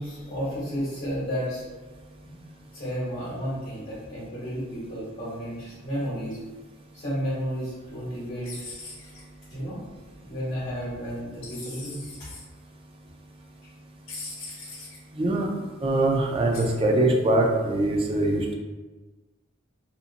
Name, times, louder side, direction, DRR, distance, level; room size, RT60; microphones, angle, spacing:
voice 1, 0.0-1.6 2.2-2.3 2.7-6.4 6.9-8.6 9.5-9.8 10.3-12.3, equal, 45° left, -11 dB, 1.1 m, -32 dB
sound 1, 8.4-9.2 11.4-12.4 14.1-15.0 16.5-16.8, left 3 dB, 75° left, 0.8 m, -40 dB
voice 2, 15.1-15.5 15.8-18.5, right 2 dB, 25° right, 0 dB, 0.3 m, -23 dB
2.8 x 2.5 x 2.4 m, 1.3 s
head